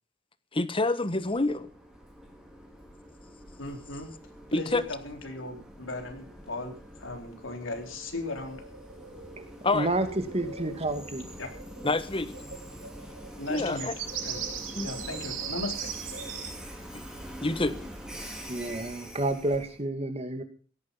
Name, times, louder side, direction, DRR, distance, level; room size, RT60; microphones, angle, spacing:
voice 1, 0.5-1.7 4.5-4.8 9.6-9.9 11.8-12.4 13.5-13.9 14.7-15.1 16.9-17.0 17.4-17.8, left 2 dB, 30° left, 1.3 m, -27 dB
Train, 1.0-19.8, equal, 5° right, 3.6 m, -45 dB
voice 2, 3.6-4.1 4.5-8.6 11.4-11.5 13.4-13.9 14.2-14.4 14.8-15.9, left 2 dB, 85° left, 4.1 m, -37 dB
sound 1, 8.5-16.5, right 7 dB, 80° right, 5.4 m, -40 dB
voice 3, 9.7-10.1 10.3-11.2 18.5-20.4, right 2 dB, 30° right, 2.5 m, -29 dB
17.0 x 14.0 x 5.6 m
head